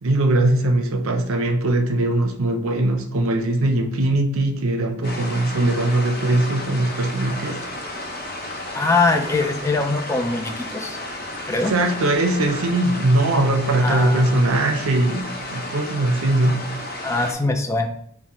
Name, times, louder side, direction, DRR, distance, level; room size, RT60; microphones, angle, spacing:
voice 1, 0.0-7.6 11.5-16.7, right 2 dB, 85° right, 0.6 m, -20 dB
sound 1, 5.0-17.3, left 1 dB, 45° left, 0.7 m, -33 dB
voice 2, 8.7-11.0 11.5-11.7 13.8-14.3 17.0-17.9, left 3 dB, 15° left, 0.3 m, -22 dB
5.7 x 2.1 x 2.9 m
head